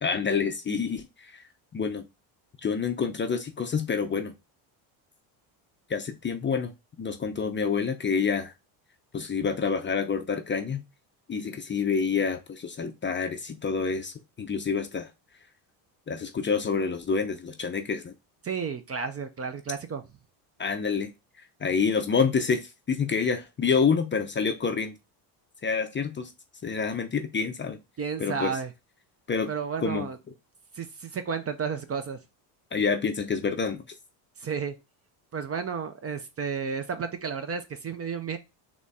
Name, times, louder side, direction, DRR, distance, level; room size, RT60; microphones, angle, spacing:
voice 1, 0.0-1.4 1.7-2.1 2.6-4.3 5.9-6.7 7.0-8.5 9.1-10.8 11.3-15.1 16.1-18.1 20.6-21.1 21.6-24.9 25.6-26.3 26.6-27.8 28.2-28.6 29.3-29.5 29.8-30.1 32.7-33.8, left 5 dB, 25° left, 6 dB, 0.5 m, -27 dB
voice 2, 18.4-20.0 28.0-28.7 29.5-30.2 30.7-32.2 34.4-34.7 35.3-38.4, right 6 dB, 30° right, 9 dB, 0.5 m, -32 dB
4.0 x 3.0 x 3.5 m, 0.25 s
supercardioid pair, 90°, 49 cm